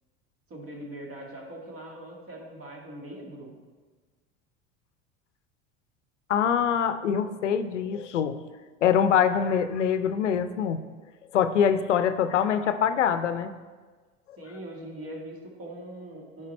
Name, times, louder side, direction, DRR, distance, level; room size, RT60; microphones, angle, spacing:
voice 1, 0.5-3.5 14.4-16.5, right 1 dB, 40° right, 0 dB, 2.1 m, -41 dB
voice 2, 6.3-8.4 8.8-10.8 11.3-13.5, left 8 dB, 90° left, 11 dB, 0.5 m, -24 dB
9.7 x 5.0 x 4.2 m, 1.4 s
hypercardioid pair, 75°, 35 cm